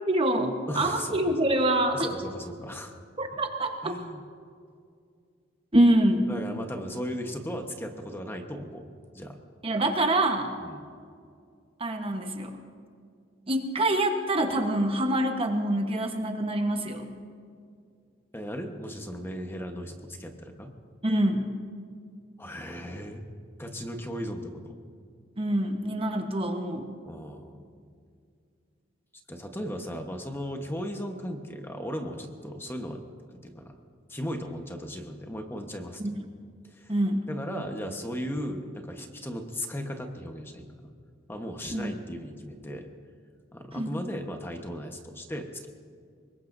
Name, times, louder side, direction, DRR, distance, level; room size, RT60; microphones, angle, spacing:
voice 1, 0.1-2.1 3.2-4.0 5.7-6.3 9.6-10.5 11.8-12.6 13.5-17.1 21.0-21.5 25.4-26.9 36.0-36.3 36.9-37.3 41.7-41.9 43.7-43.9, right 1 dB, 30° right, 4 dB, 1.2 m, -25 dB
voice 2, 0.7-1.2 1.9-3.0 3.8-4.2 6.3-9.4 10.6-10.8 18.3-20.7 22.4-23.2 23.6-24.8 27.1-27.6 29.3-33.0 33.3-33.8 34.1-36.1 36.7-36.9 37.3-40.9 41.3-42.9 43.5-45.7, equal, 10° left, 3 dB, 1.2 m, -36 dB
24.5 x 21.0 x 2.7 m, 2.2 s
head